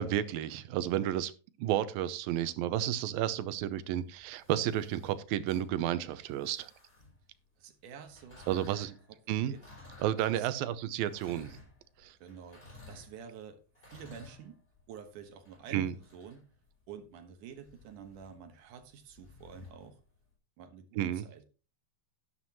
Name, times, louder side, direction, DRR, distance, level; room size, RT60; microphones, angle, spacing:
voice 1, 0.0-1.3 1.6-6.7 8.5-8.9 9.3-9.5 10.0-11.6 12.0-12.2 15.7-16.0 20.9-21.2, right 11 dB, 90° right, 2.5 m, -31 dB
sound 1, 3.9-7.4 8.0-20.3, left 2 dB, 15° left, 3.6 m, -56 dB
voice 2, 7.6-8.9 9.4-9.6 10.3-10.5 12.2-13.6 13.9-14.6 14.9-16.4 16.9-20.0 20.6-21.4, right 7 dB, 65° right, 2.6 m, -49 dB
11.5 x 11.0 x 3.0 m
omnidirectional pair, 4.1 m